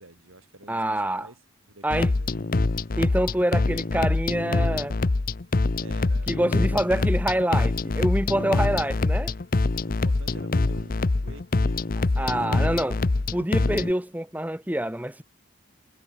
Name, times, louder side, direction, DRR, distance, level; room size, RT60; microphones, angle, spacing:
voice 1, 0.0-1.4 1.7-2.3 5.8-6.4 6.7-7.3 8.8-8.9 9.9-13.3, right 2 dB, 75° right, 7.3 m, -49 dB
voice 2, 0.7-1.3 1.8-2.1 3.0-5.0 6.3-9.3 12.2-13.0 13.3-15.2, right 1 dB, 10° right, 1.2 m, -26 dB
sound 1, 1.9-13.9, left 3 dB, 45° left, 0.6 m, -25 dB
head